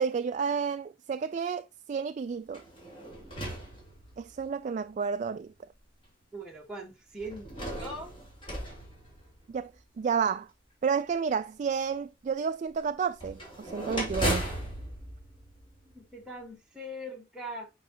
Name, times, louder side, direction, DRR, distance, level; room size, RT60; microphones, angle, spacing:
voice 1, 0.0-2.6 4.2-5.5 9.5-9.7 10.0-10.5 10.8-14.5, right 6 dB, 40° right, 0.3 m, -31 dB
sound 1, 2.5-4.5 5.3-5.4 7.2-9.8 13.2-16.2, right 1 dB, 30° left, 3.1 m, -36 dB
voice 2, 6.3-7.5 7.8-8.1 15.9-17.7, right 1 dB, 5° right, 1.3 m, -41 dB
8.6 x 4.6 x 2.9 m
head